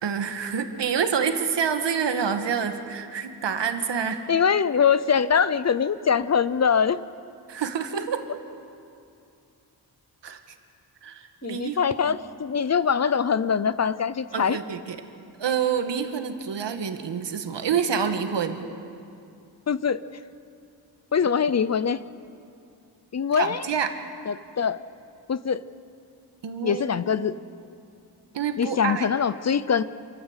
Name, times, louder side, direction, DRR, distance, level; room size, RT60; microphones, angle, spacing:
voice 1, 0.0-4.2 7.5-8.3 10.2-10.4 11.0-11.8 12.0-12.2 14.3-15.0 15.4-18.7 23.3-23.9 26.4-26.8 28.3-29.1, right 7 dB, 85° right, 6 dB, 1.6 m, -27 dB
voice 2, 4.3-7.0 11.4-14.6 19.7-20.0 21.1-22.0 23.1-23.7 24.3-24.8 25.3-25.6 26.6-27.3 28.6-29.8, left 7 dB, 40° left, 16 dB, 0.5 m, -23 dB
27.5 x 13.0 x 8.0 m, 2.5 s
wide cardioid pair, 125°, 42 cm